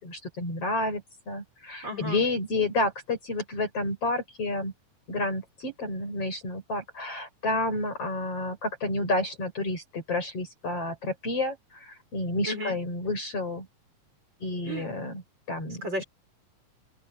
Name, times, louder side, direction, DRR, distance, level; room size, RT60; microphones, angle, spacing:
voice 1, 0.0-4.7 5.1-13.7 14.4-15.2 15.5-15.9, left 2 dB, 45° left, 6.4 m, -30 dB
voice 2, 1.8-2.2 12.4-12.8 14.7-14.9 15.8-16.0, equal, 30° right, 7.0 m, -33 dB
omnidirectional pair, 3.9 m